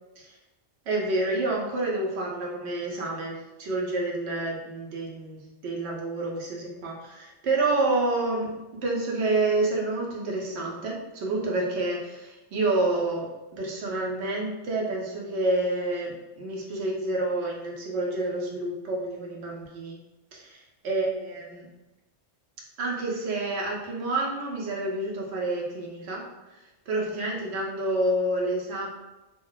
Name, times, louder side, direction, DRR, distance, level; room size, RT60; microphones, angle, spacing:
voice 1, 0.9-8.5 8.8-20.0 20.3-20.6 20.8-21.7 22.8-26.2 26.9-28.9, right 2 dB, 70° right, -2 dB, 0.9 m, -28 dB
2.3 x 2.2 x 3.8 m, 1.0 s
omnidirectional pair, 1.2 m